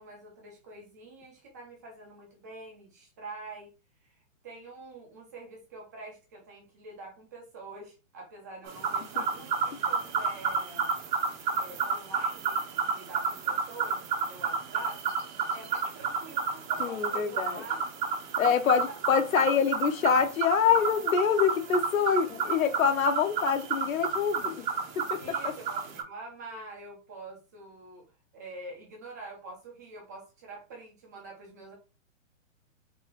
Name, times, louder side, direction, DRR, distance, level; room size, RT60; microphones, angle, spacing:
voice 1, 0.0-3.7 4.0-10.9 11.6-15.1 15.5-17.8 18.4-18.5 25.2-28.1 28.3-31.7, right 2 dB, 15° right, 0.5 m, -46 dB
sound 1, 8.7-26.0, right 5 dB, 35° right, 1.1 m, -31 dB
voice 2, 16.8-17.6 18.4-24.7 25.0-25.5, left 7 dB, 85° left, 0.9 m, -26 dB
4.6 x 3.2 x 2.5 m
hypercardioid pair, 160°, 40 cm